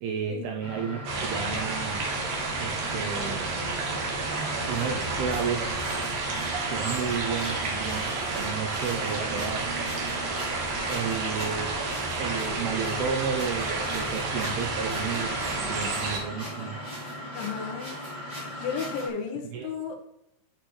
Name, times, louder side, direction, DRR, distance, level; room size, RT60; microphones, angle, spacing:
voice 1, 0.0-2.0 2.6-4.1 4.7-5.8 6.7-9.7 10.9-11.8 12.2-16.8 19.5-19.7, right 6 dB, 80° right, 2 dB, 2.3 m, -32 dB
sound 1, 0.6-19.1, left 1 dB, 10° right, 2.9 m, -38 dB
sound 2, 1.1-16.2, right 3 dB, 60° right, 2.3 m, -31 dB
sound 3, 2.0-18.4, right 4 dB, 35° right, 1.4 m, -45 dB
voice 2, 17.3-17.9 18.6-20.0, left 6 dB, 85° left, 4 dB, 3.5 m, -33 dB
10.5 x 7.6 x 3.2 m, 0.81 s
omnidirectional pair, 5.3 m